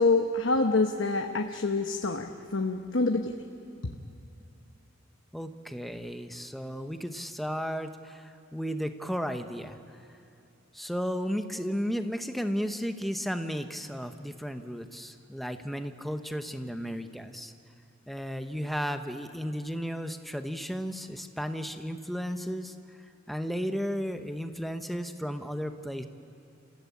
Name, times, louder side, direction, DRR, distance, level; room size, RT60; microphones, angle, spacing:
voice 1, 0.0-3.3 3.8-3.9, left 3 dB, 70° left, 4 dB, 1.0 m, -26 dB
voice 2, 5.3-9.8 10.7-17.5 18.1-22.7 23.3-26.1, equal, ahead, 7 dB, 0.9 m, -34 dB
29.5 x 15.5 x 8.5 m, 2.7 s
head